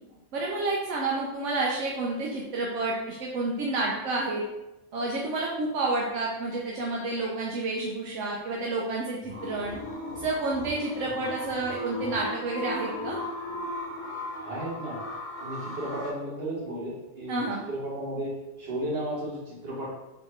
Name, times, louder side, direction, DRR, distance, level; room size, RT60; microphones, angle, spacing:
voice 1, 0.3-4.4 4.9-9.8 10.1-13.2 17.3-17.6, right 2 dB, 80° right, -3 dB, 1.0 m, -30 dB
sound 1, 9.2-16.1, left 1 dB, 70° left, 1.3 m, -37 dB
voice 2, 14.4-15.0 15.4-18.3 18.6-19.9, right 1 dB, 55° right, -6 dB, 1.5 m, -34 dB
4.1 x 3.0 x 3.1 m, 0.98 s
omnidirectional pair, 1.3 m